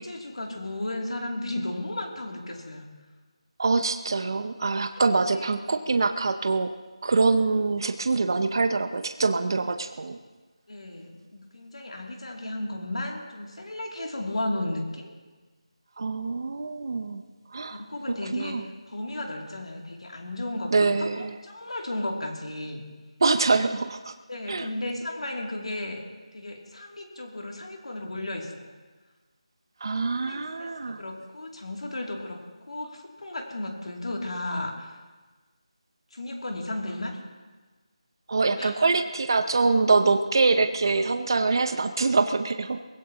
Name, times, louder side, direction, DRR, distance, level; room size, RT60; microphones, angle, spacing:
voice 1, 0.0-2.9 5.3-5.5 10.7-15.2 17.7-22.8 24.3-26.0 26.3-28.7 30.2-35.0 36.1-37.2 38.6-38.9, left 1 dB, 65° left, 1 dB, 2.7 m, -34 dB
voice 2, 3.6-6.7 7.0-10.2 16.0-17.2 17.5-17.8 18.3-18.6 20.7-21.3 23.2-24.1 24.5-24.7 29.8-31.0 38.3-42.8, right 3 dB, 40° right, 8 dB, 0.6 m, -24 dB
21.0 x 16.0 x 2.9 m, 1.3 s
figure-of-eight pair, 175°, 4 cm